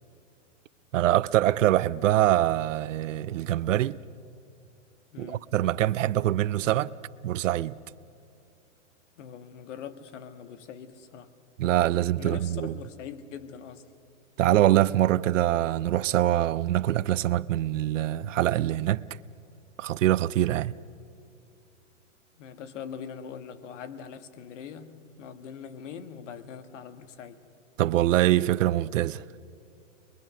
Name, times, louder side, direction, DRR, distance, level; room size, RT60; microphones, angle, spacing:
voice 1, 0.9-4.0 5.2-6.9 7.2-7.8 11.6-12.8 14.4-19.0 19.8-20.7 27.8-29.2, right 13 dB, 80° right, 0.6 m, -24 dB
voice 2, 5.1-5.5 9.2-11.3 12.2-13.8 22.4-27.4, left 7 dB, 70° left, 1.6 m, -42 dB
24.5 x 22.5 x 6.1 m
hypercardioid pair, 130°, 38 cm